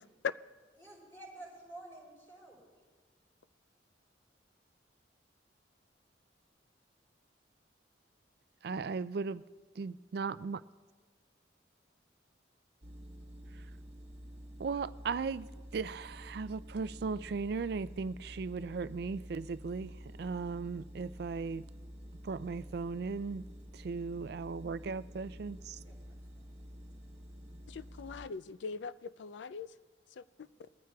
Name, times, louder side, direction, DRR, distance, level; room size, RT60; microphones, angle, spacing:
voice 1, 0.8-2.6 25.8-26.0 26.4-26.5 27.9-28.2 30.4-30.6, right 2 dB, 15° left, 4.1 m, -51 dB
voice 2, 8.6-9.4 9.8-10.6 14.6-15.5 15.7-21.6 22.2-23.5 23.7-25.8, right 4 dB, 55° right, 0.3 m, -37 dB
sound 1, 12.8-28.3, equal, 35° right, 1.1 m, -50 dB
voice 3, 27.7-29.7, left 4 dB, 75° left, 0.4 m, -42 dB
22.0 x 14.0 x 2.3 m
head